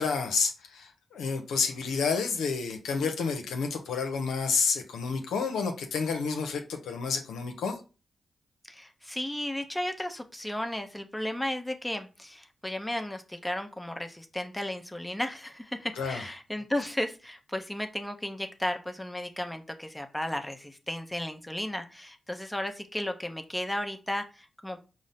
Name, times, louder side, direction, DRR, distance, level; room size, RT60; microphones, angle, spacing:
voice 1, 0.0-7.8 16.0-16.2, left 5 dB, 85° left, 0.6 m, -30 dB
voice 2, 8.7-24.8, left 1 dB, 10° left, 0.7 m, -34 dB
5.0 x 2.0 x 4.0 m
supercardioid pair, 45°, 0 cm